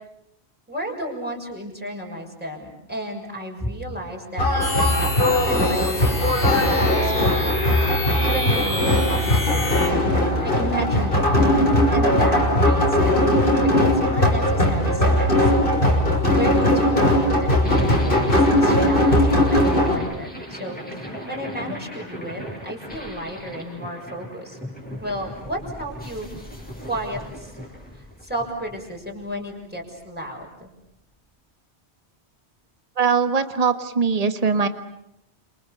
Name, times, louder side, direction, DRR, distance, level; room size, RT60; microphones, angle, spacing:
voice 1, 0.7-4.5 5.0-5.9 6.4-7.5 8.2-10.1 10.4-13.1 13.6-15.5 16.3-24.6 25.0-26.3 26.9-27.5 28.0-30.7, right 1 dB, 10° right, -1 dB, 6.5 m, -32 dB
sound 1, 4.4-20.0, left 1 dB, 55° left, 6.5 m, -19 dB
sound 2, 4.6-9.9, left 2 dB, 85° left, 3.7 m, -29 dB
sound 3, 17.6-29.8, equal, 10° left, 7.2 m, -36 dB
voice 2, 33.0-34.7, right 5 dB, 35° right, 9 dB, 1.6 m, -21 dB
30.0 x 28.5 x 7.0 m, 0.81 s
omnidirectional pair, 1.1 m